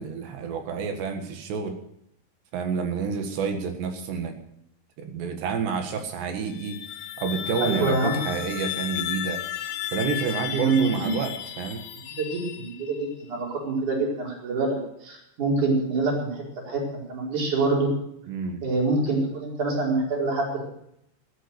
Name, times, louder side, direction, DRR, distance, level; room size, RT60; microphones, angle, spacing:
voice 1, 0.0-1.8 2.5-4.4 5.0-6.8 7.2-9.4 9.9-11.8 18.3-18.6, right 5 dB, 70° right, 5 dB, 3.7 m, -29 dB
sound 1, 6.4-13.1, left 12 dB, 80° left, 3.2 m, -34 dB
voice 2, 7.6-8.2 10.5-11.1 12.1-14.8 15.0-17.9 18.6-20.7, right 3 dB, 45° right, -2 dB, 5.9 m, -26 dB
14.0 x 12.5 x 6.8 m, 0.76 s
omnidirectional pair, 5.3 m